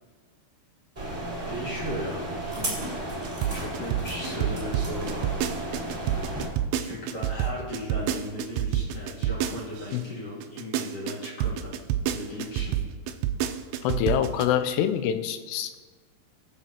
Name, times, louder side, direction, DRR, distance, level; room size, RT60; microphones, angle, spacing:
sound 1, 0.9-6.5, right 1 dB, 15° right, 2.2 m, -33 dB
voice 1, 1.5-2.8 3.5-5.4 6.8-11.8 12.1-12.8, left 1 dB, 50° left, -4 dB, 2.2 m, -36 dB
sound 2, 3.2-10.0 10.4-14.4, right 11 dB, 90° right, 2.1 m, -27 dB
voice 2, 13.8-15.8, left 10 dB, 80° left, 8 dB, 2.7 m, -25 dB
19.5 x 7.0 x 2.8 m, 1.3 s
omnidirectional pair, 4.9 m